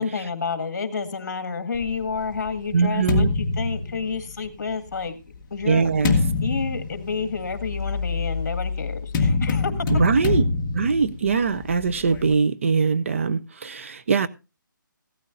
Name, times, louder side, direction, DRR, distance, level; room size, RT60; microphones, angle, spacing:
voice 1, 0.0-5.2 5.5-5.9 6.4-9.9, left 5 dB, 50° left, 2.0 m, -29 dB
sound 1, 1.7-4.6 5.3-12.3, left 4 dB, 15° left, 1.1 m, -26 dB
voice 2, 2.7-3.3 5.6-6.2 9.9-10.4 10.7-14.3, right 5 dB, 40° right, 0.6 m, -22 dB
15.5 x 13.0 x 2.6 m
hypercardioid pair, 170°, 11 cm